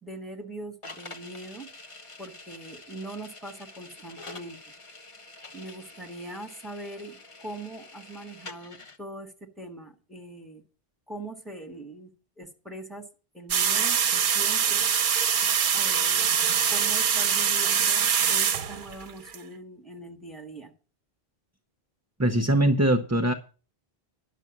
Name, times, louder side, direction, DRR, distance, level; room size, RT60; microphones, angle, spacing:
voice 1, 0.0-1.7 2.2-4.6 5.5-10.6 11.1-12.1 12.4-13.0 13.3-14.8 15.7-16.3 16.7-20.7, right 1 dB, ahead, 3 dB, 1.8 m, -41 dB
sound 1, 0.8-9.0, left 2 dB, 30° left, 1.0 m, -46 dB
sound 2, 13.5-19.4, right 7 dB, 55° right, 0.8 m, -24 dB
voice 2, 22.2-23.3, right 1 dB, 20° right, 6 dB, 0.7 m, -22 dB
11.0 x 6.5 x 7.3 m, 0.36 s
omnidirectional pair, 1.1 m